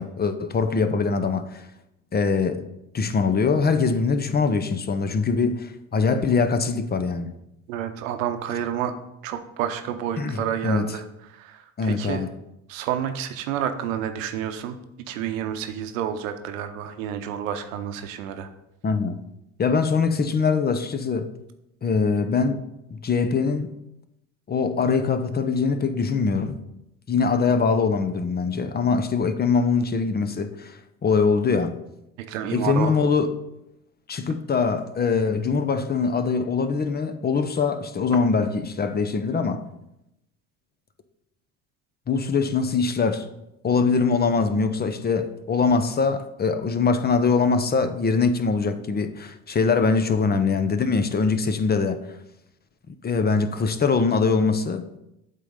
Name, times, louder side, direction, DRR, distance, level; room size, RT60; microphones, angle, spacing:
voice 1, 0.0-1.7 2.1-2.6 2.9-7.4 10.2-11.0 11.8-12.3 18.8-19.2 19.6-21.3 21.8-22.6 22.9-23.7 24.5-26.6 27.1-31.8 32.5-33.3 34.1-39.6 42.1-43.3 43.6-52.0 52.9-54.9, left 4 dB, 25° left, 0.7 m, -23 dB
voice 2, 7.7-8.9 9.2-11.0 11.3-12.2 12.7-14.8 15.1-18.5 32.3-32.9, right 9 dB, 80° right, 0.8 m, -29 dB
8.2 x 3.8 x 5.4 m
hypercardioid pair, 75°, 38 cm